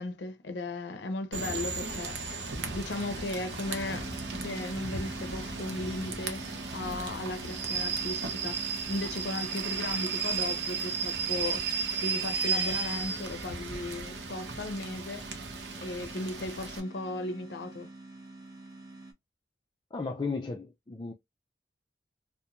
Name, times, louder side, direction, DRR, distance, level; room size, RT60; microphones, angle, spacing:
voice 1, 0.0-6.4 6.7-15.3 15.8-17.9, left 2 dB, 80° left, 0.5 m, -36 dB
Rain / Train, 1.3-16.8, right 4 dB, 75° right, 0.7 m, -34 dB
sound 1, 3.6-19.1, right 2 dB, 20° right, 0.7 m, -46 dB
voice 2, 19.9-21.1, left 4 dB, 25° left, 0.4 m, -34 dB
2.9 x 2.1 x 2.4 m
head